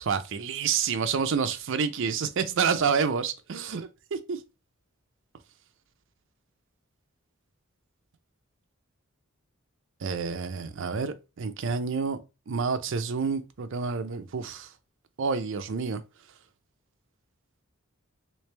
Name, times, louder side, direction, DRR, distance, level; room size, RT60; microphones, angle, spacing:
voice 1, 0.0-4.4 10.0-12.2 12.5-14.7 15.2-16.0, right 5 dB, 60° right, 0.5 m, -28 dB
3.3 x 3.2 x 3.2 m
head